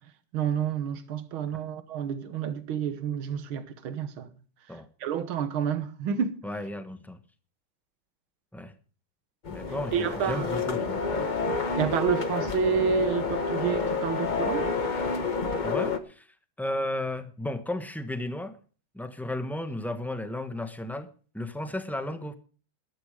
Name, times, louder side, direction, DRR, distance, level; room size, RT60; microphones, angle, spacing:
voice 1, 0.3-4.3 5.0-6.4 9.9-10.5 11.2-11.3 11.8-14.7, right 8 dB, 75° right, 2.0 m, -29 dB
voice 2, 6.4-7.2 8.5-8.8 9.5-11.1 15.6-16.3 16.6-18.6 18.9-21.1 21.3-22.3, left 1 dB, ahead, 0.3 m, -34 dB
sound 1, 9.4-16.0, left 4 dB, 30° left, 0.8 m, -29 dB
13.0 x 12.5 x 4.9 m
omnidirectional pair, 2.3 m